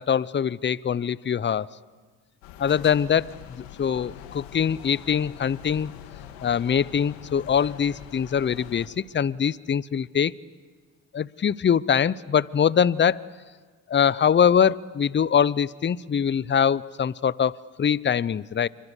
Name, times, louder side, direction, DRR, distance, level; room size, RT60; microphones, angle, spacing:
voice 1, 0.0-1.7 2.6-5.9 6.4-10.3 11.1-13.3 13.9-18.7, left 8 dB, 30° left, 21 dB, 0.7 m, -23 dB
sound 1, 2.4-8.9, left 9 dB, 85° left, 2.1 m, -43 dB
27.0 x 24.5 x 8.3 m, 1.5 s
supercardioid pair, 65°, 40 cm